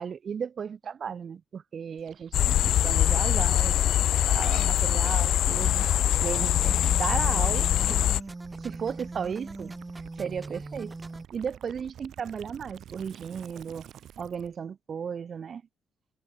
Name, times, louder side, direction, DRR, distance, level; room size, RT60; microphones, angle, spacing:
voice 1, 0.0-3.9 4.3-5.9 6.2-8.0 8.6-9.8 10.2-10.9 11.3-13.9 14.2-15.6, right 7 dB, 50° right, 1.7 m, -35 dB
Gurgling / Liquid, 2.0-14.6, right 10 dB, 70° right, 2.5 m, -49 dB
sound 1, 2.3-8.2, left 11 dB, 75° left, 0.3 m, -23 dB
sound 2, 6.3-11.3, right 2 dB, 20° right, 0.9 m, -40 dB
cardioid pair, 90°, 0 cm